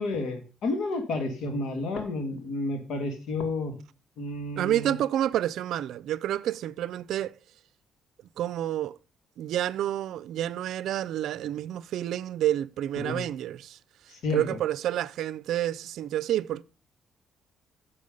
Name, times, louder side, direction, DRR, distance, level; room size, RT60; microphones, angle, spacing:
voice 1, 0.0-3.8 4.2-5.0 13.0-13.2 14.1-14.6, left 2 dB, 75° left, 2.4 m, -31 dB
voice 2, 4.6-7.3 8.4-9.0 9.4-13.8 14.3-16.6, right 12 dB, 80° right, 0.5 m, -29 dB
10.5 x 7.1 x 5.4 m
cardioid pair, 90°, 0 cm